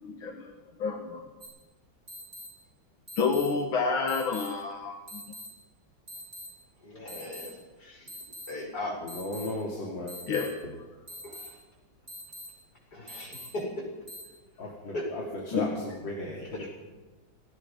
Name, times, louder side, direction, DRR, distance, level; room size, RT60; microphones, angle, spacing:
voice 1, 0.0-0.5 0.8-1.2 3.2-5.2 10.3-10.5 15.5-15.7, left 5 dB, 85° left, 2 dB, 2.5 m, -29 dB
sound 1, 1.4-1.5 2.1-2.5 3.1-3.5 4.1-4.5 5.1-5.5 6.1-6.5 7.1-7.5 8.1-8.5 9.1-9.5 10.1-10.5 11.1-11.5 12.1-12.5 13.1-13.5 14.1-14.2, left 1 dB, 35° right, 7.9 m, -43 dB
voice 2, 6.8-8.1 8.5-8.9 11.2-11.6 12.9-13.7 14.9-15.0, left 2 dB, 55° left, -1 dB, 7.0 m, -38 dB
voice 3, 9.0-10.2 10.6-10.8 14.6-16.7, left 2 dB, 70° left, -2 dB, 3.6 m, -36 dB
27.0 x 19.0 x 5.5 m, 1.2 s
omnidirectional pair, 2.1 m